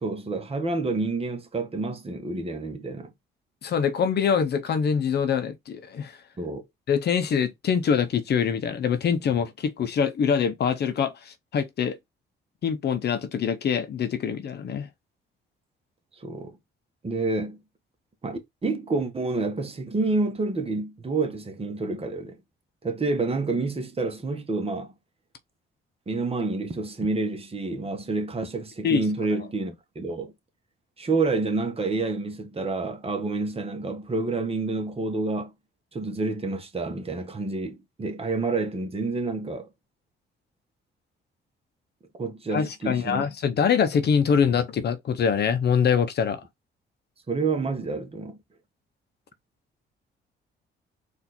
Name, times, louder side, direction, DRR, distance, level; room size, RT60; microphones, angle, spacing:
voice 1, 0.0-3.1 6.4-6.6 16.2-16.6 17.0-17.6 18.2-22.4 22.8-24.9 26.1-30.3 31.0-35.5 35.9-39.7 42.2-43.2 47.3-48.4, right 3 dB, 30° right, 1.2 m, -28 dB
voice 2, 3.6-6.2 6.9-12.0 12.6-14.9 28.8-29.4 42.5-46.4, left 7 dB, 55° left, 0.8 m, -24 dB
4.3 x 2.7 x 4.2 m
cardioid pair, 90°, 20 cm